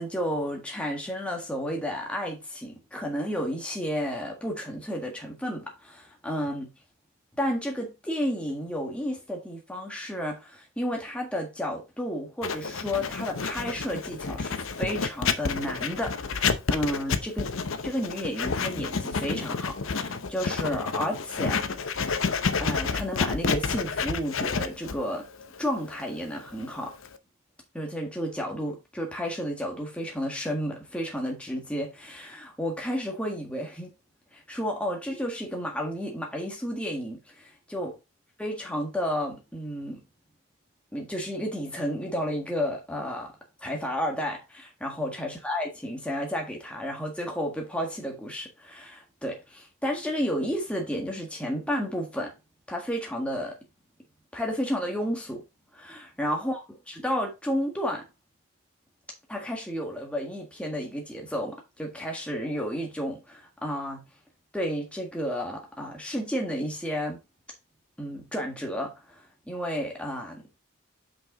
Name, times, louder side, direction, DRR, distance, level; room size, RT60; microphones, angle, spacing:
voice 1, 0.0-6.7 7.4-17.5 17.8-21.6 22.6-25.2 25.6-26.9 27.7-33.9 34.3-37.9 38.4-40.0 40.9-43.3 43.6-52.3 52.7-53.6 54.3-55.4 55.7-56.6 56.9-58.1 59.3-64.0 64.5-67.2 68.0-70.6, equal, 5° left, 1.6 m, -32 dB
Writing, 12.4-27.2, left 5 dB, 75° left, 0.7 m, -30 dB
5.9 x 5.5 x 3.8 m
head